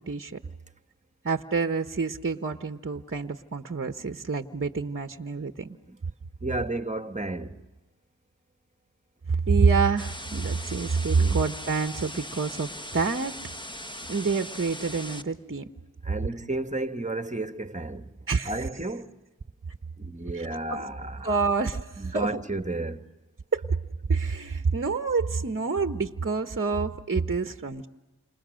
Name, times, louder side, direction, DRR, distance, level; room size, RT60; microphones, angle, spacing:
voice 1, 0.1-0.4 1.2-5.8 9.3-13.3 14.1-15.7 18.3-18.5 20.3-20.8 21.2-22.4 23.5-23.8 24.1-27.9, right 4 dB, 35° right, 1.2 m, -27 dB
voice 2, 6.4-7.6 11.1-11.4 16.0-18.1 18.4-19.1 20.0-21.3 22.0-23.1, right 2 dB, 20° right, 1.5 m, -32 dB
sound 1, 10.0-15.2, left 1 dB, 10° left, 1.5 m, -39 dB
29.5 x 27.5 x 6.5 m
cardioid pair, 40°, 38 cm